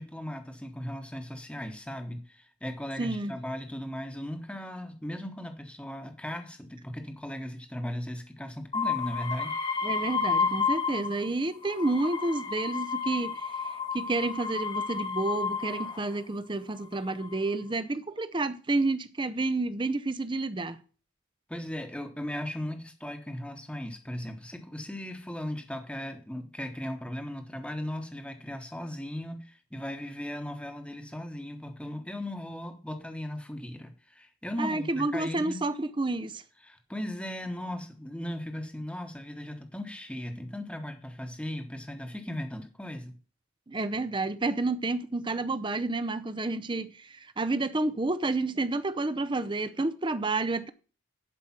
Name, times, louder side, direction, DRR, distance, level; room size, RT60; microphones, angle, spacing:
voice 1, 0.0-9.6 21.5-35.6 36.6-43.2, left 1 dB, 5° left, 1.1 m, -37 dB
voice 2, 3.0-3.3 9.8-20.8 34.6-36.4 43.7-50.7, right 2 dB, 20° right, 0.6 m, -30 dB
sound 1, 8.7-11.3 11.6-16.2 16.9-17.5, left 5 dB, 25° left, 1.4 m, -31 dB
11.5 x 5.1 x 5.8 m
head